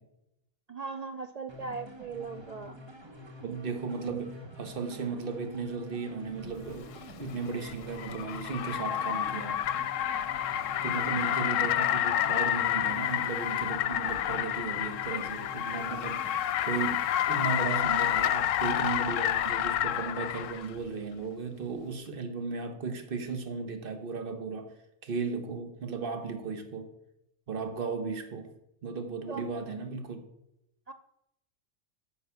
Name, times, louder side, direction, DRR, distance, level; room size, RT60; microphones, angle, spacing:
voice 1, 0.7-2.8 10.9-11.4 29.3-29.5 30.9-31.0, right 4 dB, 70° right, 7 dB, 0.3 m, -39 dB
sound 1, 1.5-16.4, left 1 dB, 25° right, 1.0 m, -47 dB
voice 2, 3.4-9.6 10.8-24.7 25.0-26.9 27.5-28.5 28.8-30.2, right 5 dB, 45° right, 7 dB, 1.3 m, -36 dB
Car, 6.7-20.7, left 11 dB, 80° left, 0.9 m, -29 dB
9.5 x 5.3 x 6.9 m, 0.84 s
omnidirectional pair, 1.3 m